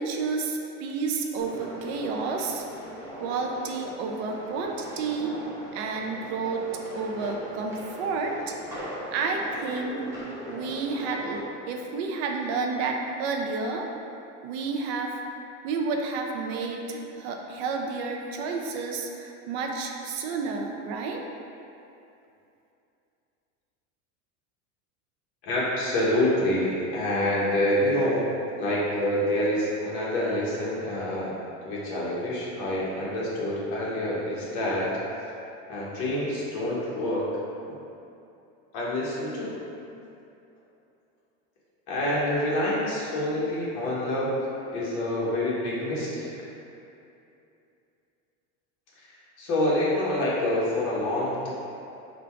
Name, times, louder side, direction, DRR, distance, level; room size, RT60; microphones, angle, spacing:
voice 1, 0.0-2.6 3.2-5.3 5.7-6.7 6.9-8.5 9.1-10.0 10.5-13.9 14.4-15.2 15.6-21.3, right 4 dB, 60° right, 2 dB, 0.5 m, -30 dB
sound 1, 1.4-11.4, equal, 10° right, 0.8 m, -40 dB
voice 2, 25.4-28.2 28.6-31.4 31.6-34.9 35.7-37.3 37.7-37.8 38.7-39.6 41.9-46.3 49.0-51.5, left 1 dB, 50° left, -6 dB, 1.1 m, -27 dB
3.8 x 2.3 x 4.5 m, 2.7 s
supercardioid pair, 145°, 37 cm